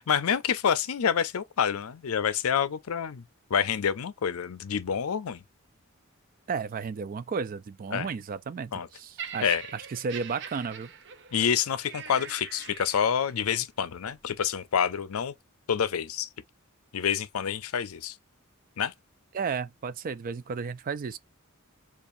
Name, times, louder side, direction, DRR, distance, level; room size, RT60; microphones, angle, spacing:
voice 1, 0.0-3.2 3.5-5.4 7.9-8.1 8.7-8.9 9.4-9.6 11.3-15.3 15.7-16.3 16.9-18.1 18.8-18.9, left 7 dB, 85° left, 0.5 m, -27 dB
voice 2, 6.5-10.9 19.3-21.2, right 5 dB, 40° right, 0.4 m, -33 dB
Laughter, 9.2-13.4 14.2-14.4, right 7 dB, 60° right, 0.7 m, -43 dB
6.8 x 2.5 x 2.6 m
head